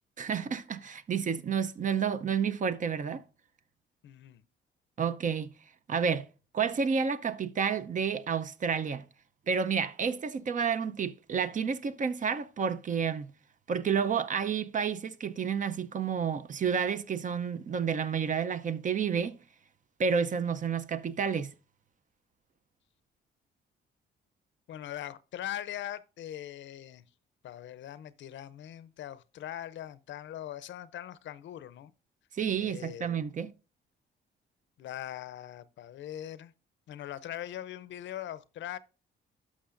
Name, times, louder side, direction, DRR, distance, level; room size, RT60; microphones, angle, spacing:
voice 1, 0.2-3.2 5.0-5.5 5.9-6.3 6.5-9.1 9.5-13.3 13.7-19.4 20.0-21.5 32.3-33.5, right 6 dB, 40° right, 0.6 m, -30 dB
voice 2, 4.0-4.4 24.7-27.0 27.4-31.9 32.6-33.2 34.8-36.5 36.9-38.8, left 12 dB, 70° left, 0.6 m, -41 dB
11.5 x 6.2 x 2.5 m
cardioid pair, 90°, 20 cm